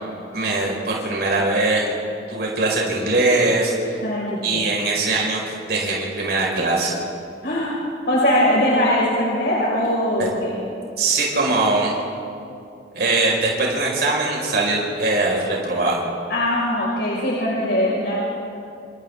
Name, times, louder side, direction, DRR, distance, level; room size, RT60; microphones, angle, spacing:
voice 1, 0.3-1.9 2.3-3.9 4.4-5.4 5.7-6.9 10.2-10.3 11.0-11.9 12.9-16.0, right 2 dB, 65° right, -2 dB, 5.3 m, -21 dB
voice 2, 4.0-4.6 7.4-7.8 8.1-10.5 16.3-18.2, left 1 dB, 70° left, -6 dB, 5.6 m, -21 dB
29.0 x 27.5 x 3.8 m, 2.5 s
head